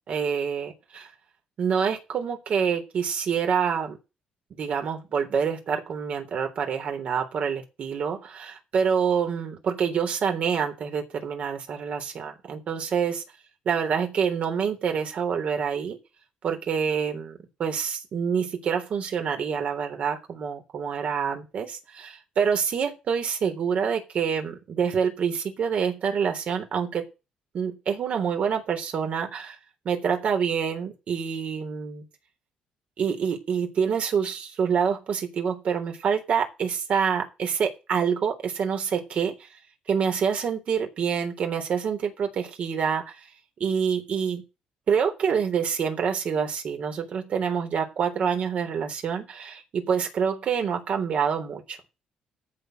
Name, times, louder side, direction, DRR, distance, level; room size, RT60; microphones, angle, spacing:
voice 1, 0.1-1.1 1.6-4.0 4.6-13.2 13.7-16.0 16.4-27.0 27.5-29.6 29.9-32.0 33.0-39.5 39.9-43.3 43.6-44.4 44.9-51.8, right 7 dB, 55° right, 5 dB, 3.5 m, -27 dB
14.0 x 5.0 x 8.0 m, 0.27 s
cardioid pair, 110°, 3 cm